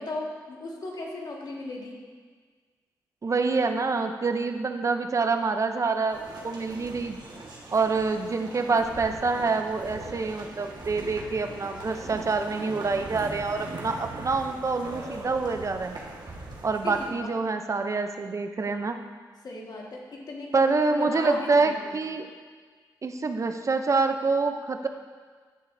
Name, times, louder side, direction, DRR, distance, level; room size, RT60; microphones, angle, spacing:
voice 1, 0.0-2.0 16.8-17.4 19.4-20.7 21.0-21.9, left 2 dB, 60° left, -2 dB, 1.6 m, -36 dB
voice 2, 3.2-7.2 7.7-15.9 16.6-19.0 20.5-22.3 23.0-24.9, right 4 dB, 40° right, 6 dB, 0.6 m, -26 dB
sound 1, 6.1-17.1, right 2 dB, 65° right, 1.4 m, -41 dB
11.0 x 6.8 x 2.6 m, 1.5 s
cardioid pair, 65°, 8 cm